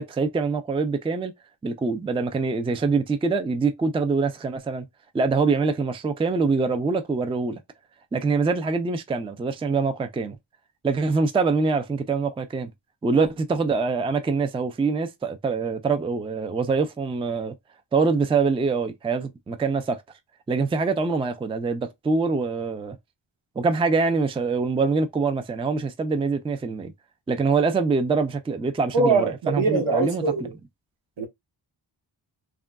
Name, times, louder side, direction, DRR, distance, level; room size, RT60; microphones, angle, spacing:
voice 1, 0.0-1.3 1.6-4.9 5.1-7.6 8.1-10.4 10.8-12.7 13.0-17.5 17.9-20.0 20.5-23.0 23.6-26.9 27.3-30.2, right 4 dB, 15° right, 0.3 m, -24 dB
voice 2, 28.9-30.5 31.2-31.3, right 3 dB, 85° right, 1.1 m, -22 dB
3.6 x 2.2 x 2.2 m
wide cardioid pair, 145°, 45 cm